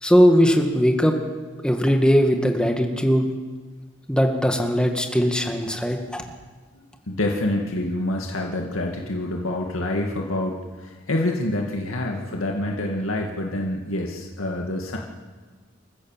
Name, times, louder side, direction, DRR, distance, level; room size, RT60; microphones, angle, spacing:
voice 1, 0.0-1.1 1.6-3.3 4.1-6.2, equal, 5° left, 4 dB, 1.9 m, -19 dB
voice 2, 6.7-15.0, left 1 dB, 85° left, 0 dB, 2.3 m, -27 dB
27.5 x 14.5 x 7.5 m, 1.4 s
head